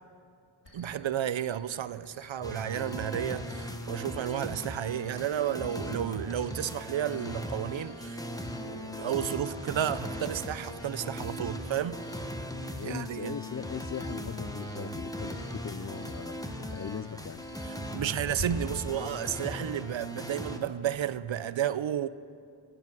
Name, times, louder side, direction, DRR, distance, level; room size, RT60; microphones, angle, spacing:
Cricket, 0.6-18.4, left 2 dB, 60° left, 3.6 m, -53 dB
voice 1, 0.7-8.2 9.0-12.0 12.8-13.4 17.6-22.1, right 10 dB, 70° right, 0.6 m, -32 dB
sound 1, 2.4-20.6, equal, 5° left, 1.2 m, -39 dB
sound 2, 8.6-14.2, right 5 dB, 85° right, 1.0 m, -51 dB
voice 2, 12.8-16.4 16.7-17.5, left 7 dB, 40° left, 0.4 m, -39 dB
17.0 x 9.8 x 7.4 m
wide cardioid pair, 60°, 48 cm